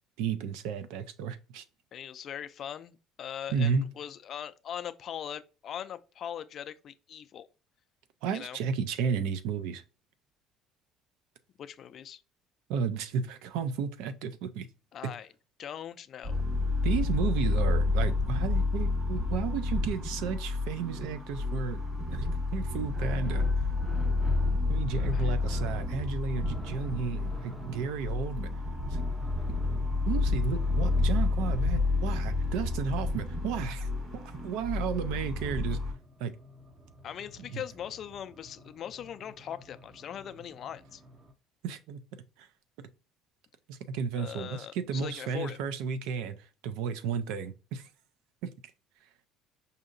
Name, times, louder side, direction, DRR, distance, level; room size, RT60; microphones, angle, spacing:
voice 1, 0.2-1.6 3.5-3.9 8.2-9.8 12.7-14.7 16.8-21.8 22.1-23.4 24.7-28.5 28.9-29.0 30.0-35.8 36.2-36.3 37.5-37.6 41.6-42.0 42.4-42.5 43.7-47.9 48.4-48.5, right 6 dB, 90° right, 0.5 m, -33 dB
voice 2, 1.9-7.5 8.3-8.6 11.6-12.2 14.9-15.3 15.6-16.4 25.1-25.3 37.0-41.0 44.1-45.6, left 9 dB, 45° left, 0.3 m, -41 dB
sound 1, 16.2-35.9, left 3 dB, 40° right, 1.4 m, -29 dB
sound 2, 22.9-32.9 34.4-41.3, right 1 dB, 10° right, 0.6 m, -48 dB
5.1 x 2.7 x 2.5 m
cardioid pair, 130°, 0 cm